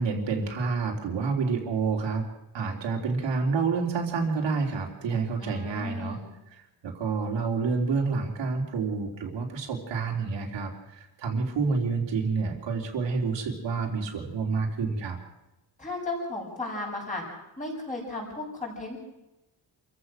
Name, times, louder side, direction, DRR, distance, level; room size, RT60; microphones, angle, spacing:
voice 1, 0.0-2.3 2.5-6.2 6.8-15.2, right 4 dB, 70° right, 1 dB, 3.6 m, -28 dB
voice 2, 5.4-6.2 15.8-17.2 17.6-19.0, left 2 dB, 15° left, -2 dB, 6.9 m, -34 dB
27.0 x 15.0 x 6.4 m, 0.94 s
wide cardioid pair, 170°, 45 cm